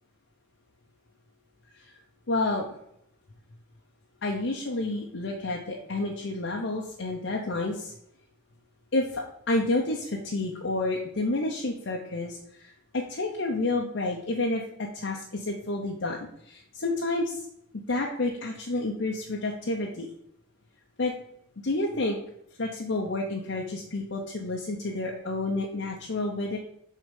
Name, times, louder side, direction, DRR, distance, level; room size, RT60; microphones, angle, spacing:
voice 1, 2.3-2.8 4.2-7.9 8.9-17.5 17.9-20.1 21.0-21.1 21.6-22.2 22.6-26.6, left 2 dB, 60° left, -1 dB, 0.7 m, -30 dB
6.4 x 3.8 x 5.3 m, 0.74 s
head